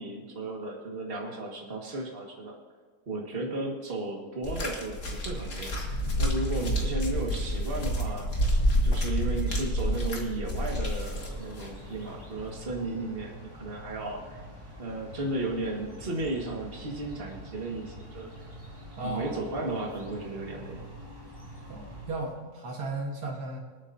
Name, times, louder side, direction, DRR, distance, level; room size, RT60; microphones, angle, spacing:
voice 1, 0.0-2.6 3.1-5.8 6.2-8.3 8.7-14.4 14.8-18.3 19.0-20.8, right 2 dB, 40° right, -1 dB, 2.1 m, -34 dB
sound 1, 4.4-11.7 12.5-12.6, equal, 55° left, 2.4 m, -28 dB
sound 2, 11.0-22.4, equal, 15° right, 2.0 m, -46 dB
voice 2, 19.0-19.6 21.7-23.6, right 2 dB, 75° right, 0 dB, 2.2 m, -35 dB
26.5 x 9.1 x 2.8 m, 1.5 s
omnidirectional pair, 1.6 m